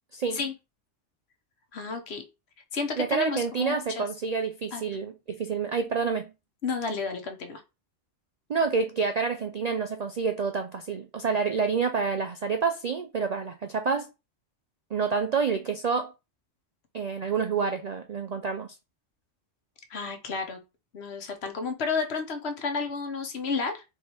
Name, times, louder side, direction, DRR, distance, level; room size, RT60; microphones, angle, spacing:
voice 1, 1.7-2.2 2.7-4.1 4.7-4.8 6.6-7.6 19.9-20.6 20.9-23.8, left 4 dB, 60° left, 1.1 m, -31 dB
voice 2, 3.0-6.3 8.5-14.1 14.9-16.1 16.9-18.7, right 5 dB, 60° right, 0.4 m, -28 dB
3.5 x 3.2 x 4.3 m
omnidirectional pair, 1.3 m